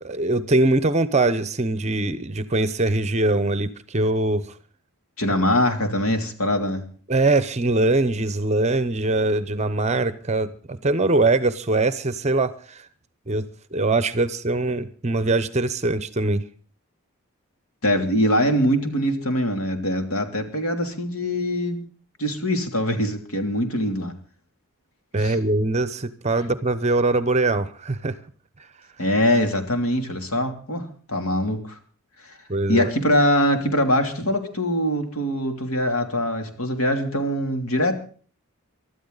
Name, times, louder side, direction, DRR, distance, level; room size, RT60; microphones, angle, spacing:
voice 1, 0.0-4.4 7.1-12.9 13.3-13.5 13.7-16.4 25.1-28.1 32.5-32.9, right 2 dB, 30° right, 14 dB, 0.8 m, -22 dB
voice 2, 5.2-6.9 17.8-21.8 22.2-24.1 25.2-25.4 29.0-31.8 32.7-38.0, left 1 dB, 75° left, 6 dB, 3.0 m, -23 dB
24.5 x 13.0 x 4.0 m, 0.42 s
head